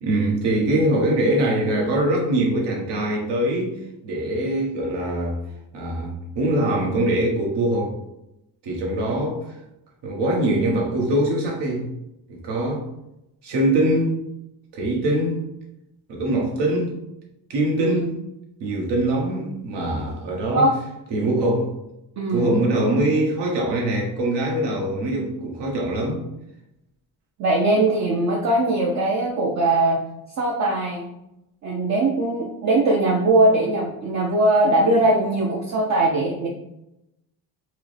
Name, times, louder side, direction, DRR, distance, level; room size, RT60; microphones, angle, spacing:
voice 1, 0.0-3.7 4.0-5.4 5.7-7.9 8.6-9.5 10.0-11.9 12.3-12.9 13.4-14.1 14.7-15.4 16.1-16.9 17.5-18.1 18.6-20.7 21.1-21.7 22.3-26.2, right 1 dB, 80° right, -1 dB, 1.2 m, -23 dB
voice 2, 22.2-22.5 27.4-30.0 30.4-31.1 31.6-36.5, right 2 dB, 45° right, -1 dB, 0.5 m, -20 dB
4.7 x 2.1 x 3.2 m, 0.86 s
cardioid pair, 160°, 42 cm